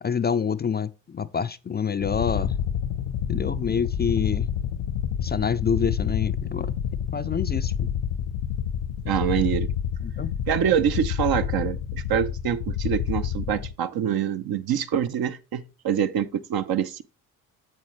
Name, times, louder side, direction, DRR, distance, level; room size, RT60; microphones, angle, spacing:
voice 1, 0.0-2.5 3.3-4.5 5.2-6.7 7.1-7.9 10.0-10.3, left 6 dB, 25° left, 0.4 m, -27 dB
sound 1, 2.0-13.7, left 8 dB, 80° left, 1.0 m, -28 dB
voice 2, 9.0-9.7 10.5-17.0, right 9 dB, 60° right, 0.9 m, -25 dB
7.6 x 7.3 x 3.2 m
hypercardioid pair, 55°, 41 cm